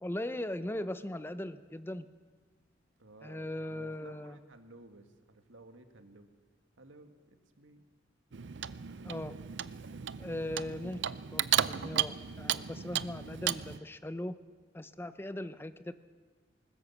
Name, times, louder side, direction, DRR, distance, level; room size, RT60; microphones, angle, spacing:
voice 1, 0.0-2.1 3.2-4.4 9.0-9.4 10.2-11.0 11.3-14.4 14.7-15.9, left 1 dB, 10° left, 12 dB, 0.6 m, -39 dB
voice 2, 3.0-6.3 6.8-7.9, right 2 dB, 90° right, 7 dB, 1.8 m, -55 dB
Clock, 8.3-13.8, right 10 dB, 65° right, 0.5 m, -34 dB
20.5 x 20.0 x 7.2 m, 1.4 s
head